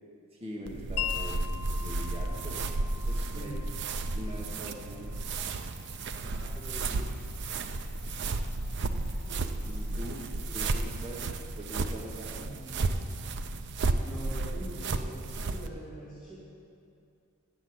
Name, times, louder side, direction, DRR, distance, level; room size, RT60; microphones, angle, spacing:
voice 1, 0.3-1.5 1.8-2.6 3.1-3.6 4.1-5.1 9.6-10.2 10.5-12.4, equal, 25° right, -3 dB, 1.0 m, -42 dB
sound 1, 0.7-15.7, right 3 dB, 50° right, 0.5 m, -33 dB
Wind chime, 1.0-7.0, left 11 dB, 75° left, 0.3 m, -42 dB
sound 2, 5.3-10.9, left 1 dB, 25° left, 2.2 m, -46 dB
voice 2, 6.2-7.1 9.2-10.1 12.4-13.1 14.0-16.4, right 1 dB, ahead, -12 dB, 2.1 m, -45 dB
8.7 x 7.1 x 7.8 m, 2.5 s
head